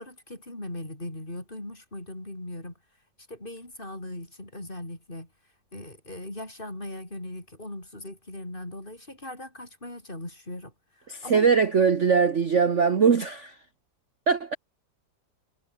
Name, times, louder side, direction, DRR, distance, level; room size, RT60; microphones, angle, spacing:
voice 1, 0.0-2.8 3.3-5.3 5.7-11.5, left 1 dB, 25° left, 5.9 m, -39 dB
voice 2, 11.1-13.6 14.3-14.6, right 6 dB, 40° right, 1.5 m, -21 dB
omnidirectional pair, 2.0 m